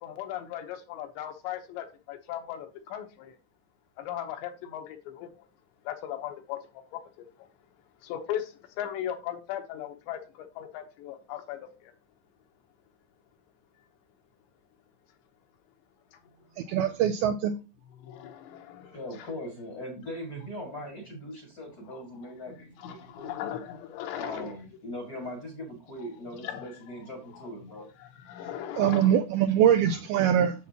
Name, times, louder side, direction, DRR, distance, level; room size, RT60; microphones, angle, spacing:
voice 1, 0.0-3.4 4.0-5.3 5.9-6.6 6.9-7.0 8.0-11.9 16.7-16.8 18.0-19.0 21.9-22.0 22.8-24.5 26.4-26.7 27.8-27.9 28.3-29.1, left 11 dB, 80° left, 3.2 m, -37 dB
voice 2, 16.7-17.5 28.8-30.5, right 10 dB, 85° right, 2.2 m, -23 dB
voice 3, 18.9-23.5 24.1-27.9, left 1 dB, 45° left, 1.2 m, -40 dB
8.4 x 7.0 x 2.9 m
omnidirectional pair, 5.1 m